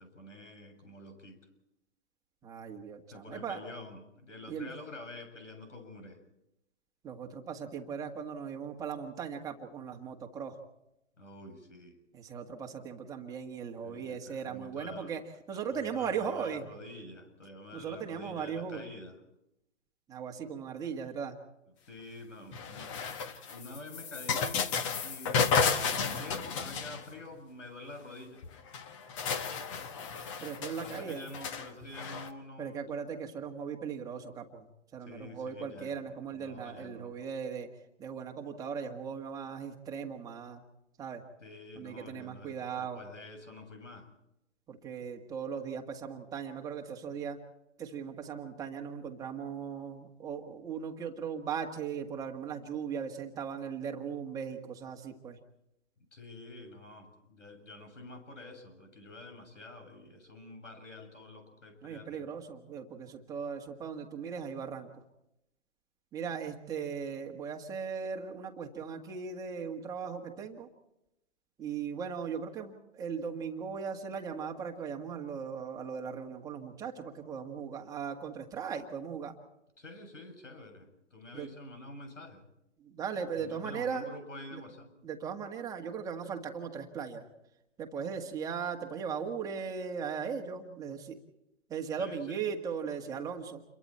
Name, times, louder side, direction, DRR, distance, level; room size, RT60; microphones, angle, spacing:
voice 1, 0.0-1.4 3.1-6.2 11.2-12.0 13.8-15.1 15.5-19.2 21.9-23.0 23.5-24.7 25.0-28.4 30.8-32.9 35.0-37.1 41.4-44.1 56.0-62.3 79.8-82.4 83.3-84.9 92.0-92.5, left 2 dB, 80° left, 7 dB, 7.2 m, -48 dB
voice 2, 2.4-3.6 4.5-4.7 7.0-10.6 12.1-15.2 15.5-16.7 17.7-18.8 20.1-21.4 30.2-31.3 32.6-37.7 38.0-40.6 41.0-41.2 41.8-43.0 44.7-47.4 47.8-55.4 61.8-65.0 66.1-70.7 71.6-79.3 81.3-81.5 82.8-84.1 84.5-84.6 85.0-87.3 87.8-91.2 91.7-93.6, right 6 dB, 10° right, 2 dB, 1.8 m, -38 dB
sound 1, 22.5-27.3 28.4-28.5 28.7-32.3, left 5 dB, 25° left, 1.4 m, -32 dB
28.5 x 23.0 x 4.4 m, 0.85 s
hypercardioid pair, 145°, 37 cm